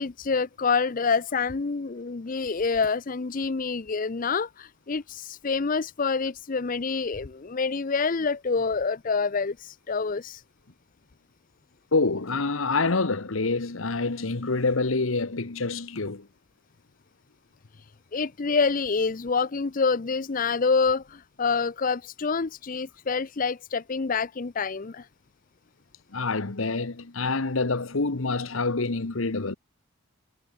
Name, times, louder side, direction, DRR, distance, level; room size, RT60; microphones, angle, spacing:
voice 1, 0.0-10.4 18.1-25.1, left 4 dB, 40° left, 0.5 m, -27 dB
voice 2, 11.9-16.3 26.1-29.5, left 3 dB, 75° left, 1.2 m, -26 dB
head